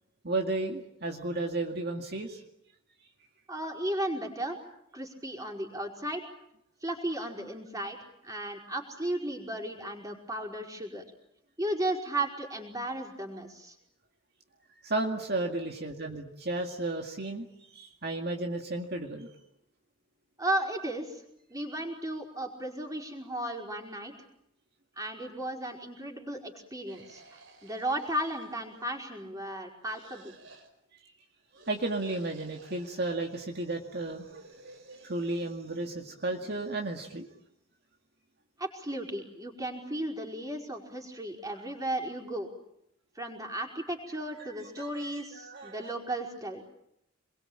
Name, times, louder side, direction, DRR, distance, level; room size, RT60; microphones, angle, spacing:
voice 1, 0.2-2.4 14.8-19.3 31.7-34.4 35.0-37.3 44.4-44.5 44.8-45.9, right 2 dB, 55° right, 2 dB, 2.2 m, -33 dB
voice 2, 3.5-4.6 4.9-6.2 6.8-8.0 8.2-11.0 11.6-13.7 20.4-21.2 21.5-24.1 25.0-30.3 38.6-42.5 43.1-46.6, right 1 dB, 20° right, 1 dB, 5.1 m, -35 dB
sound 1, 26.9-29.1 29.8-30.7 31.5-33.2 34.0-35.5, right 3 dB, 85° right, 5.1 m, -55 dB
27.5 x 22.5 x 8.9 m, 0.78 s
head